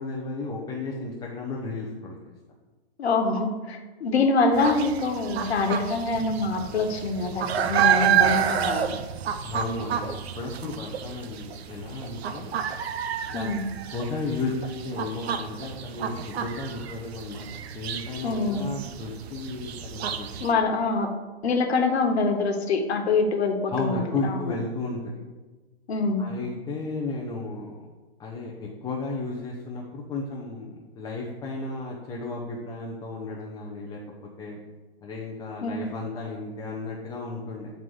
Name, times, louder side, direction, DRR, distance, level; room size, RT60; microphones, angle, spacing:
voice 1, 0.0-2.2 9.4-12.6 13.3-13.5 13.9-17.5 17.7-20.5 23.7-25.2 26.2-27.8 28.2-30.7 30.9-34.0 34.4-34.6 35.0-37.7, left 3 dB, 10° left, -3 dB, 0.7 m, -33 dB
voice 2, 3.0-9.0 13.3-13.6 18.2-18.6 20.4-21.1 21.4-24.5 25.9-26.3 35.6-35.9, left 3 dB, 75° left, 4 dB, 1.3 m, -25 dB
sound 1, 4.5-20.5, right 8 dB, 70° right, 0.7 m, -29 dB
9.3 x 4.0 x 4.8 m, 1.3 s
hypercardioid pair, 135°, 32 cm